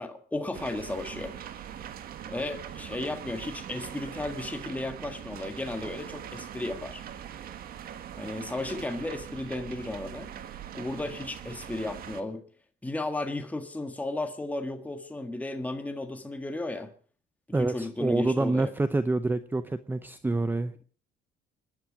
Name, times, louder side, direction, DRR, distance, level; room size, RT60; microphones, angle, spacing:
voice 1, 0.0-1.4 2.2-7.0 8.2-10.3 10.7-12.4 12.8-16.9 17.6-18.7, left 2 dB, 10° left, 1.7 m, -34 dB
sound 1, 0.5-12.2, right 9 dB, 60° right, 1.7 m, -42 dB
voice 2, 17.5-20.8, right 2 dB, 10° right, 0.7 m, -27 dB
26.0 x 10.5 x 5.0 m
cardioid pair, 110°, 17 cm